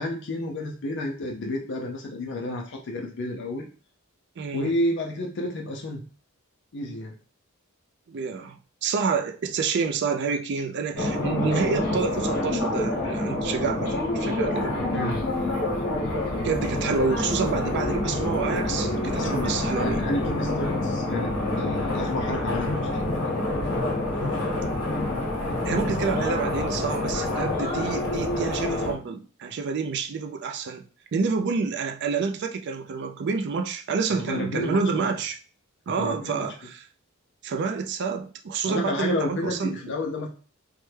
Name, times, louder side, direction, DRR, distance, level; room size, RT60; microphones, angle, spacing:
voice 1, 0.0-3.7 4.5-6.0 6.7-7.1 14.9-15.5 19.1-23.3 34.1-35.2 36.0-36.5 38.6-40.3, left 1 dB, 55° left, 0.5 m, -31 dB
voice 2, 4.4-4.7 8.1-8.6 8.8-15.0 16.4-20.0 25.6-30.8 31.1-35.4 35.9-36.8 37.4-40.0, right 5 dB, 55° right, 0.4 m, -28 dB
sound 1, 11.0-28.9, left 1 dB, 80° left, 0.9 m, -27 dB
3.3 x 2.1 x 3.2 m
head